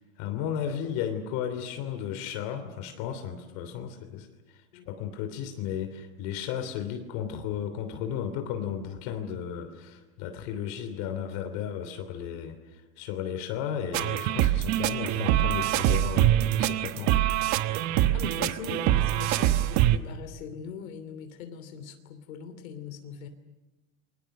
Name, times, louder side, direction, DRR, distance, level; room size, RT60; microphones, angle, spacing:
voice 1, 0.0-4.3 4.9-17.2, left 9 dB, 55° left, 7 dB, 3.1 m, -34 dB
sound 1, 13.9-20.0, right 13 dB, 40° right, 1.1 m, -24 dB
voice 2, 18.1-23.3, left 7 dB, 85° left, 8 dB, 3.1 m, -41 dB
29.0 x 23.5 x 6.7 m, 1.1 s
supercardioid pair, 140°, 41 cm